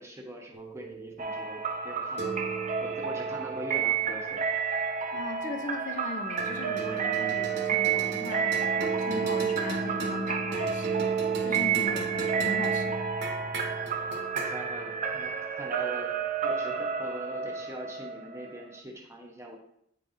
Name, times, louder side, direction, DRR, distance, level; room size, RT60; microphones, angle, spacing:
voice 1, 0.0-4.5 14.3-19.6, equal, 15° right, 0 dB, 1.1 m, -42 dB
sound 1, 0.5-5.2 6.4-16.9, right 5 dB, 65° right, 1.0 m, -35 dB
sound 2, 1.2-18.8, right 6 dB, 40° right, 0.6 m, -31 dB
voice 2, 5.1-11.0 11.4-13.0, left 2 dB, 40° left, 5 dB, 0.7 m, -39 dB
8.2 x 5.3 x 2.7 m, 0.72 s
head